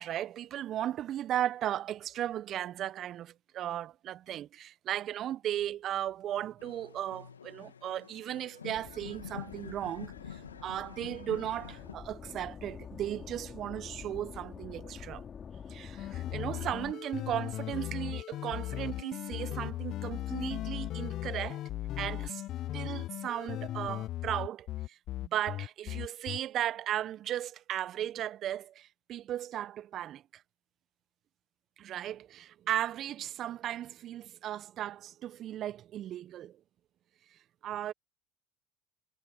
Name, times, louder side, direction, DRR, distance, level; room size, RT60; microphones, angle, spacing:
voice 1, 0.0-15.2 15.7-21.6 22.0-22.4 22.7-30.2 31.8-36.6 37.6-37.9, right 11 dB, 50° right, 1.1 m, -36 dB
sound 1, 6.6-11.9, left 7 dB, 90° left, 2.2 m, -47 dB
sound 2, 8.7-16.9, left 7 dB, 35° left, 4.4 m, -47 dB
sound 3, 16.0-26.4, left 14 dB, 50° left, 0.7 m, -37 dB
hypercardioid pair, 70°, 0 cm